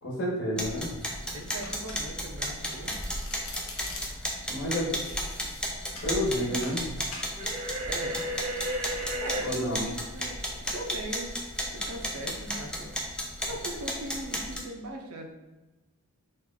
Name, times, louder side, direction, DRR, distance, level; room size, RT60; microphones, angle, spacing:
voice 1, 0.0-0.9 4.5-4.9 6.0-6.8 9.4-9.8, equal, 55° left, -5 dB, 1.1 m, -29 dB
sound 1, 0.6-14.6, equal, 5° left, 0.3 m, -34 dB
voice 2, 1.3-2.9 4.5-4.6 4.9-5.2 7.9-8.3 9.2-11.4 11.7-12.9 13.4-15.3, right 1 dB, 75° right, 2 dB, 0.5 m, -39 dB
Domestic sounds home sounds, 1.6-2.3 2.6-4.3 4.9-6.1 6.6-6.8 7.1-7.3, left 3 dB, 80° left, 0.7 m, -43 dB
sound 2, 7.4-9.5, right 1 dB, 30° right, 0.7 m, -33 dB
3.0 x 2.4 x 3.7 m, 1.1 s
head